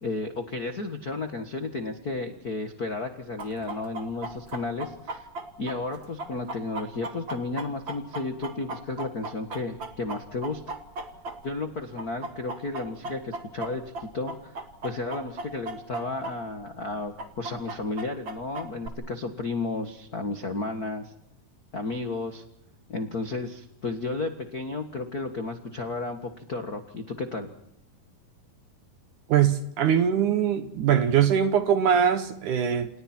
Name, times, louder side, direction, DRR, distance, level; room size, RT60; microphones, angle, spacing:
voice 1, 0.0-5.3 5.6-10.8 11.4-21.1 21.7-22.4 22.9-27.5, left 3 dB, 55° left, 6 dB, 1.0 m, -33 dB
Chicken rooster, 3.4-11.7 12.0-16.3 16.6-16.7 17.2-18.9, right 2 dB, 40° right, 2.1 m, -36 dB
voice 2, 29.3-32.9, right 8 dB, 65° right, 10 dB, 2.2 m, -22 dB
29.5 x 28.5 x 4.5 m, 0.77 s
omnidirectional pair, 4.5 m